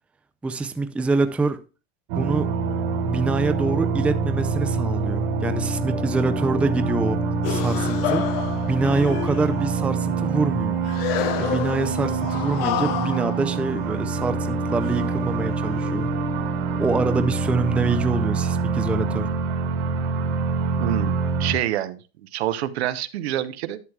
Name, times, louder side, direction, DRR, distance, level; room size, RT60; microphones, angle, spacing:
voice 1, 0.4-1.6 2.1-2.5 3.0-7.2 7.5-8.2 8.7-10.8 11.4-16.1 16.8-19.3, right 3 dB, 5° right, 0.3 m, -25 dB
sound 1, 2.1-21.6, right 4 dB, 65° right, 2.1 m, -25 dB
sound 2, 7.4-9.9 10.9-14.2 14.7-15.0 15.8-16.1, left 12 dB, 60° left, 0.8 m, -30 dB
voice 2, 20.8-23.8, right 13 dB, 85° right, 0.8 m, -27 dB
11.0 x 7.3 x 2.3 m
supercardioid pair, 130°, 31 cm